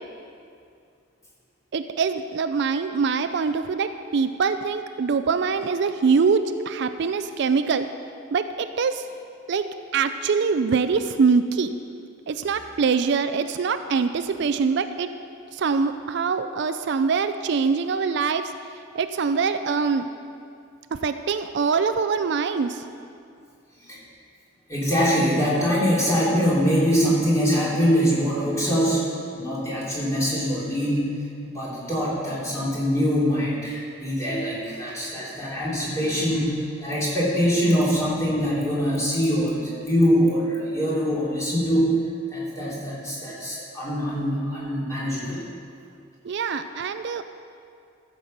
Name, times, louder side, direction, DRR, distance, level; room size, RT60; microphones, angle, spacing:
voice 1, 1.7-7.9 8.3-9.0 9.5-9.7 9.9-11.7 12.3-15.1 15.5-18.4 18.9-20.1 20.9-22.8 46.2-47.2, right 5 dB, 60° right, 10 dB, 0.4 m, -23 dB
voice 2, 24.7-29.1 29.4-31.1 31.5-41.9 42.3-45.4, equal, 15° left, -7 dB, 3.0 m, -23 dB
14.0 x 7.4 x 5.3 m, 2.4 s
head